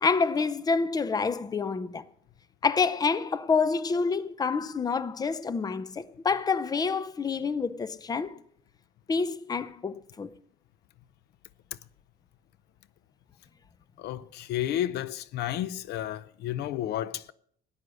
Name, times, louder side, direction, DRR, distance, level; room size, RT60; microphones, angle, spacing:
voice 1, 0.0-2.0 2.6-8.4 9.1-10.3, left 5 dB, 20° left, 0.6 m, -27 dB
voice 2, 14.0-17.3, left 12 dB, 75° left, 0.6 m, -32 dB
14.0 x 9.7 x 6.3 m
cardioid pair, 110°, 17 cm